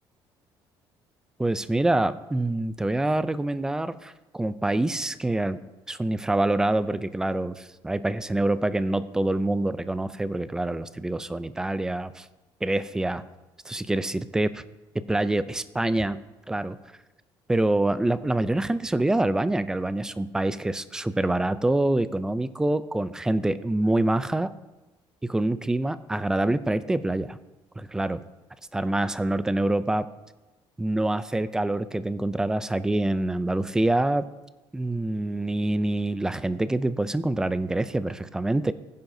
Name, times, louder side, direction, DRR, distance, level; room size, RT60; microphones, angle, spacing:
voice 1, 1.4-5.6 5.9-12.3 12.6-13.2 13.7-14.6 14.9-16.2 16.5-16.8 17.5-24.5 25.2-27.4 27.8-28.2 28.7-30.1 30.8-34.2 34.7-38.7, right 2 dB, 5° right, 13 dB, 0.3 m, -26 dB
15.5 x 10.5 x 2.7 m, 1.1 s
cardioid pair, 165°, 9 cm